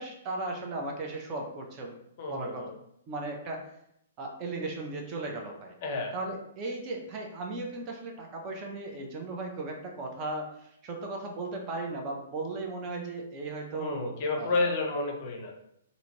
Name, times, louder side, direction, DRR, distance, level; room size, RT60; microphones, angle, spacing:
voice 1, 0.0-1.9 2.3-2.8 3.1-3.7 4.2-5.7 6.1-14.7, right 2 dB, 30° right, 1 dB, 0.5 m, -36 dB
voice 2, 2.2-2.7 5.8-6.2 13.7-15.6, left 3 dB, 40° left, 3 dB, 0.5 m, -30 dB
2.6 x 2.4 x 3.0 m, 0.75 s
figure-of-eight pair, 115°, 0 cm